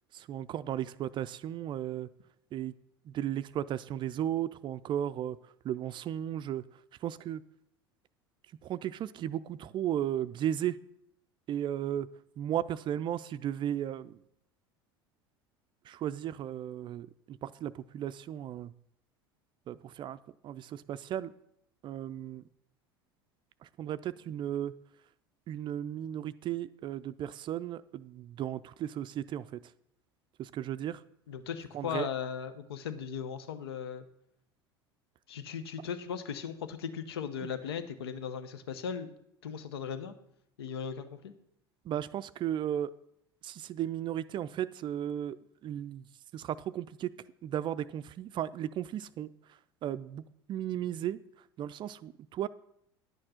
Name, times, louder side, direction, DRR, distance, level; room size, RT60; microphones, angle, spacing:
voice 1, 0.1-2.1 2.5-2.7 3.1-5.4 5.6-6.6 7.0-7.4 8.6-10.8 11.5-12.1 12.4-14.1 15.9-18.7 19.7-20.2 20.4-21.3 21.8-22.4 23.8-24.7 25.5-29.6 30.4-31.0 31.7-32.1 41.9-42.9 43.4-45.4 45.6-46.0 46.3-47.1 47.4-49.3 49.8-50.2 50.5-51.2 51.6-52.5, right 11 dB, 35° right, 15 dB, 0.4 m, -35 dB
voice 2, 31.3-34.0 35.3-39.1 39.4-40.1 40.6-41.3, left 7 dB, 75° left, 11 dB, 0.8 m, -37 dB
10.5 x 6.5 x 5.7 m, 0.75 s
figure-of-eight pair, 75°, 13 cm